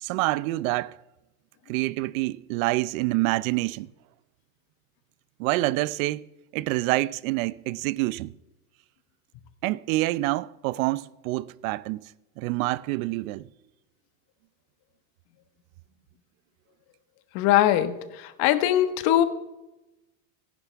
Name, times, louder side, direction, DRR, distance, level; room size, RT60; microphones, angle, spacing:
voice 1, 0.0-1.0 1.7-3.9 5.4-6.3 6.5-8.3 9.6-12.0 12.4-13.5, right 19 dB, 65° right, 0.7 m, -27 dB
voice 2, 17.3-19.2, left 12 dB, 55° left, 1.6 m, -21 dB
26.5 x 11.5 x 3.5 m
hypercardioid pair, 100°, 44 cm